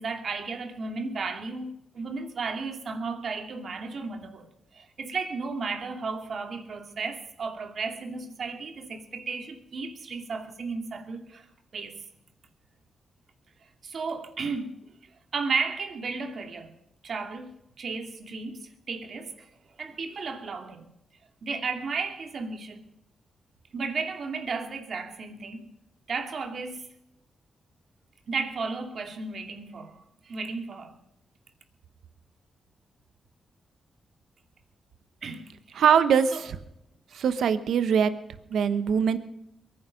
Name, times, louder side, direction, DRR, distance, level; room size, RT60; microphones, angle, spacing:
voice 1, 0.0-4.4 5.0-11.4 11.7-11.9 13.8-14.7 15.3-16.7 17.0-18.6 18.9-19.3 19.8-20.8 21.4-22.8 23.7-25.7 26.1-26.8 28.3-30.0 30.3-30.9 35.2-35.5 36.3-36.4 37.1-37.5, right 4 dB, 60° right, 2.4 m, -34 dB
voice 2, 35.7-36.6 37.1-38.1 38.5-39.2, right 7 dB, 80° right, 1.0 m, -22 dB
22.5 x 10.0 x 5.2 m
cardioid pair, 65°, 0 cm